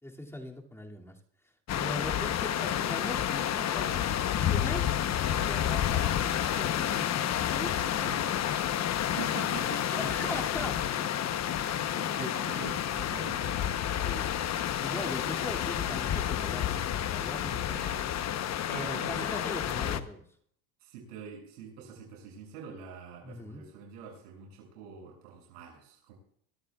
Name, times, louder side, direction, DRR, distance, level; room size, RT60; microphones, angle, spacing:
voice 1, 0.0-1.2 1.7-4.1 4.4-4.9 5.2-7.1 7.5-7.7 9.9-10.8 12.2-12.3 14.0-14.3 14.8-17.8 18.7-20.2 23.2-23.6, left 1 dB, 5° left, 0 dB, 2.5 m, -40 dB
sound 1, 1.7-20.0, left 10 dB, 35° left, 0.9 m, -30 dB
voice 2, 7.8-8.3 9.1-10.0 11.8-13.5 17.5-18.4 18.7-19.3 20.8-26.1, right 6 dB, 80° right, -1 dB, 7.2 m, -45 dB
23.5 x 13.0 x 2.4 m, 0.63 s
supercardioid pair, 105°, 46 cm